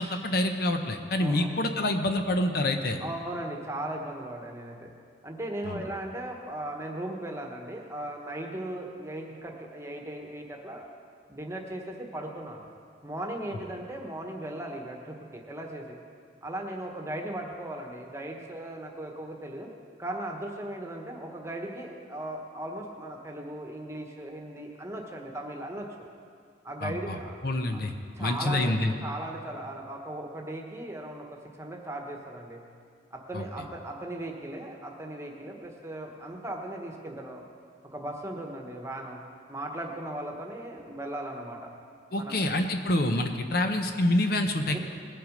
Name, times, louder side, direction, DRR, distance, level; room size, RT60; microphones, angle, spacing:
voice 1, 0.0-3.0 5.7-5.8 26.8-27.2 27.4-27.9 28.2-28.9 33.3-33.4 42.1-44.8, left 1 dB, 50° left, 6 dB, 0.8 m, -27 dB
voice 2, 1.2-1.5 3.0-4.9 5.2-10.9 11.3-12.7 13.0-16.0 16.4-19.7 20.0-25.9 26.6-27.4 27.7-27.8 28.2-32.6 33.1-37.4 37.9-39.2 39.5-41.7 42.2-42.4 44.7-44.8, right 1 dB, 15° right, 1 dB, 1.2 m, -37 dB
20.0 x 7.7 x 5.2 m, 2.2 s
head